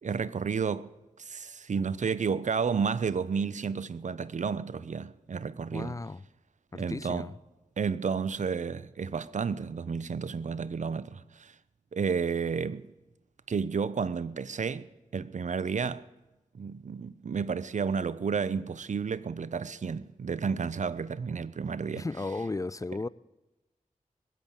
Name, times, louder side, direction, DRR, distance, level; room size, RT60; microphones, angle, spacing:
voice 1, 0.0-0.9 1.2-6.0 6.7-7.3 7.8-11.5 11.9-12.9 13.5-16.0 16.5-22.1, right 5 dB, 60° right, 0.6 m, -31 dB
voice 2, 5.7-6.2 6.7-7.3 21.9-23.1, left 3 dB, 25° left, 0.4 m, -35 dB
20.0 x 8.2 x 8.7 m
cardioid pair, 45°, 14 cm